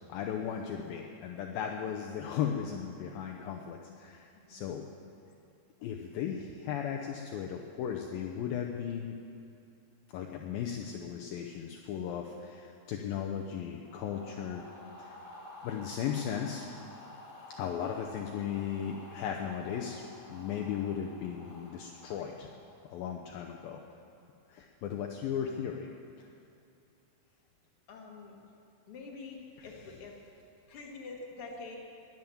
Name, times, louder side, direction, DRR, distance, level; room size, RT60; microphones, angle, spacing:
voice 1, 0.1-4.8 5.8-9.2 10.1-14.6 15.0-15.1 15.6-16.7 17.6-20.0 20.3-22.5 22.9-23.8 24.5-25.9 29.6-29.7, left 8 dB, 75° left, 1 dB, 2.3 m, -36 dB
sound 1, 13.8-22.9, left 1 dB, 20° left, 2.8 m, -51 dB
voice 2, 27.9-28.4 28.9-29.4 29.6-30.2 30.7-31.8, left 3 dB, 40° left, -1 dB, 2.4 m, -45 dB
21.5 x 9.4 x 7.2 m, 2.6 s
omnidirectional pair, 4.7 m